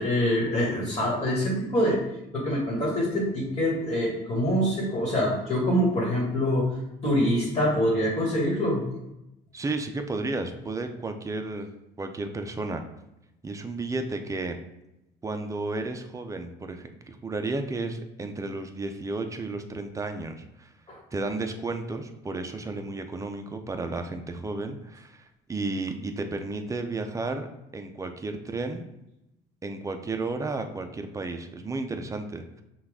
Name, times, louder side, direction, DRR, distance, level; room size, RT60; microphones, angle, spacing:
voice 1, 0.0-2.0 2.3-6.8 7.0-8.8 20.9-21.0, equal, 25° left, -3 dB, 1.6 m, -25 dB
voice 2, 9.5-11.7 12.0-12.8 13.4-14.6 15.2-20.7 21.1-27.5 27.7-28.9 29.6-32.6, right 3 dB, 20° right, 6 dB, 0.5 m, -33 dB
5.7 x 2.4 x 3.5 m, 0.89 s
cardioid pair, 110°, 17 cm